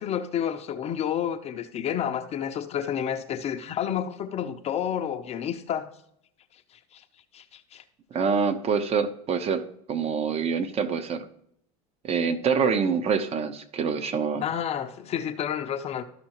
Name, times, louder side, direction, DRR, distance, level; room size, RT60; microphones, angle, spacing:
voice 1, 0.0-5.9 6.5-7.0 7.3-7.8 12.6-12.7 14.4-16.0, left 9 dB, 35° left, 0.6 m, -30 dB
voice 2, 8.1-9.6 9.9-11.3 12.0-14.4, right 6 dB, 35° right, 0.9 m, -26 dB
13.0 x 5.5 x 3.0 m
supercardioid pair, 105°, 18 cm